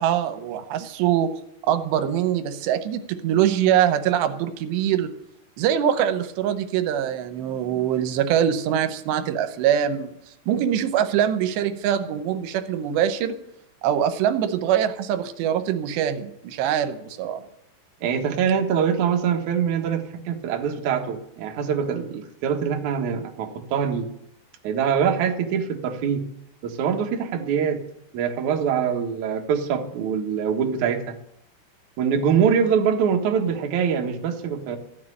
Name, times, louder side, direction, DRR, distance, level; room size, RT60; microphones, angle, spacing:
voice 1, 0.0-1.3 1.7-5.1 5.6-10.1 10.5-13.3 13.8-17.4, right 10 dB, 85° right, 9 dB, 3.1 m, -23 dB
voice 2, 18.0-24.1 24.6-26.3 26.6-27.8 28.1-31.2 32.0-34.8, right 7 dB, 60° right, 2 dB, 2.4 m, -24 dB
14.5 x 7.5 x 9.8 m, 0.76 s
omnidirectional pair, 4.9 m